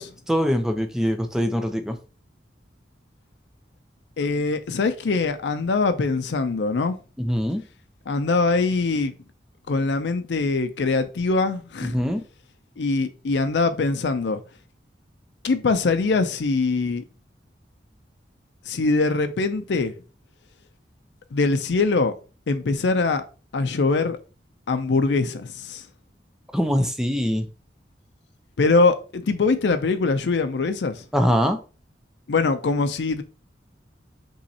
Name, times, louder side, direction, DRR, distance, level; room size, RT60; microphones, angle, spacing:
voice 1, 0.3-2.0 7.2-7.6 11.9-12.2 26.5-27.5 31.1-31.6, equal, 5° right, 0.6 m, -23 dB
voice 2, 4.2-7.0 8.1-9.1 9.7-12.0 12.8-14.4 15.4-17.0 18.7-19.9 21.3-22.1 22.5-23.2 23.5-24.2 24.7-25.8 28.6-31.0 32.3-33.2, left 3 dB, 80° left, 0.5 m, -22 dB
5.4 x 3.1 x 2.8 m
head